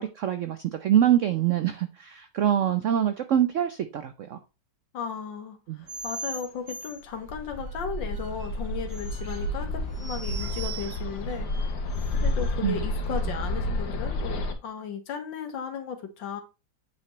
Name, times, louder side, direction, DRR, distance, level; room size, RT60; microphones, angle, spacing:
voice 1, 0.0-4.4 5.7-5.8 12.6-12.8, right 10 dB, 85° right, 0.6 m, -25 dB
voice 2, 4.9-16.4, left 7 dB, 80° left, 1.8 m, -36 dB
sound 1, 5.8-12.5, right 4 dB, 65° right, 2.1 m, -41 dB
Bird, 7.3-14.5, left 1 dB, 65° left, 1.6 m, -30 dB
8.3 x 5.6 x 3.1 m
omnidirectional pair, 2.0 m